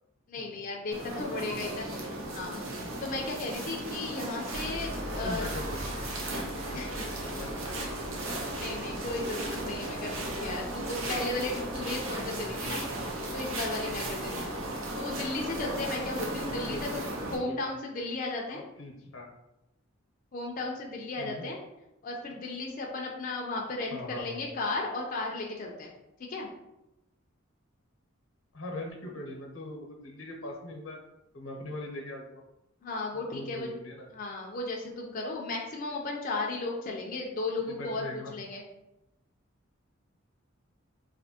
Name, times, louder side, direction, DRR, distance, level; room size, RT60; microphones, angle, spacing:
voice 1, 0.3-1.9 2.3-2.6 3.0-5.4 6.7-7.1 8.6-12.8 13.3-14.5 15.0-17.0 17.3-18.6 20.3-21.6 22.0-25.9 26.2-26.5 32.8-33.7 34.1-38.0 38.3-38.6, left 2 dB, 45° left, -1 dB, 0.5 m, -35 dB
sound 1, 0.9-17.3, right 1 dB, 75° right, 0.8 m, -36 dB
voice 2, 1.2-2.0 5.0-8.3 15.1-15.3 16.6-17.0 17.4-17.6 18.5-19.3 21.2-21.5 23.9-24.4 28.5-31.0 31.3-32.4 33.1-34.1 37.6-38.3, left 1 dB, 85° left, 1 dB, 0.9 m, -42 dB
sound 2, 4.5-16.8, right 1 dB, 30° right, 0.6 m, -44 dB
4.2 x 2.7 x 2.8 m, 0.90 s
head